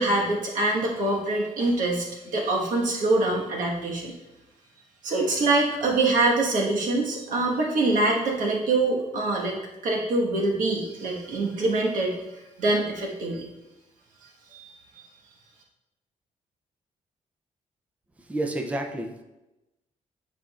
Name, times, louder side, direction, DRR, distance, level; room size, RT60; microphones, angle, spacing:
voice 1, 0.0-4.1 5.0-9.6 9.8-12.2 12.6-13.4 14.5-14.7, right 2 dB, 85° right, -2 dB, 1.4 m, -24 dB
voice 2, 18.2-19.2, right 1 dB, 10° right, 3 dB, 0.5 m, -30 dB
9.7 x 5.0 x 2.4 m, 0.99 s
wide cardioid pair, 145°, 13 cm